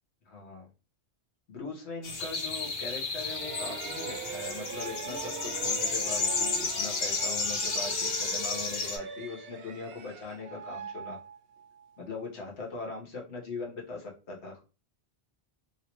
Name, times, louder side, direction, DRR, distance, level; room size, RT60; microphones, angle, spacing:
voice 1, 0.2-0.7 1.5-11.2 12.0-14.6, left 4 dB, 85° left, -1 dB, 1.3 m, -40 dB
sound 1, 2.0-9.0, left 4 dB, 65° left, 1.0 m, -32 dB
sound 2, 3.2-11.9, right 7 dB, 65° right, 0.8 m, -41 dB
3.1 x 2.7 x 2.9 m, 0.32 s
omnidirectional pair, 1.1 m